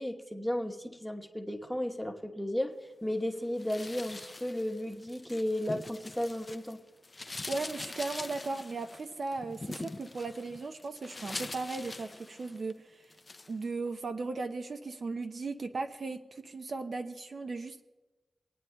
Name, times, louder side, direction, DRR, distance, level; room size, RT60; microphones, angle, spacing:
voice 1, 0.0-2.7 3.0-6.8, left 1 dB, 5° left, 3 dB, 1.0 m, -34 dB
sound 1, 3.6-6.7 7.0-12.7 13.1-13.5, left 2 dB, 30° left, 0.4 m, -43 dB
voice 2, 7.2-13.1 13.5-17.8, right 3 dB, 60° right, 7 dB, 0.6 m, -37 dB
27.0 x 9.2 x 2.2 m, 1.1 s
wide cardioid pair, 95°, 0 cm